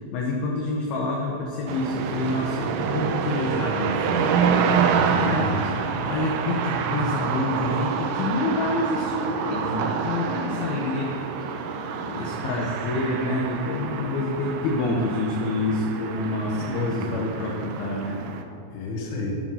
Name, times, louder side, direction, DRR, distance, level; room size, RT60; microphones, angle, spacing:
voice 1, 0.1-4.4 5.1-5.5 6.1-11.5 12.0-18.2, left 2 dB, 70° left, -2 dB, 2.6 m, -27 dB
sound 1, 1.7-18.4, right 6 dB, 80° right, 2.4 m, -27 dB
voice 2, 4.7-5.6 12.1-12.5 16.4-17.5 18.7-19.4, left 3 dB, 90° left, -1 dB, 4.5 m, -34 dB
12.5 x 9.4 x 5.7 m, 2.6 s
omnidirectional pair, 5.4 m